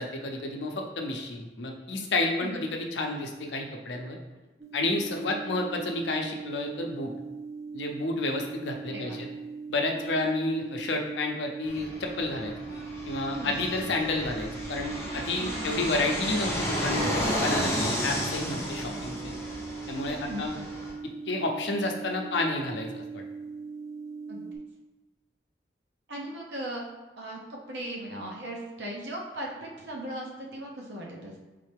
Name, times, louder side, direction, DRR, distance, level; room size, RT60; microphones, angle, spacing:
voice 1, 0.0-4.2 4.7-7.1 7.7-9.3 9.7-12.5 13.1-19.3 19.9-20.5 21.3-23.2, left 2 dB, 85° left, 2 dB, 0.6 m, -30 dB
sound 1, 4.6-24.6, right 4 dB, 15° right, 0.4 m, -40 dB
Fixed-wing aircraft airplane, 11.7-20.9, equal, 15° left, 0.8 m, -33 dB
voice 2, 20.1-20.4 24.3-24.5 26.1-26.8 27.2-31.4, right 1 dB, 80° right, -2 dB, 0.8 m, -38 dB
3.8 x 3.2 x 3.3 m, 1.1 s
head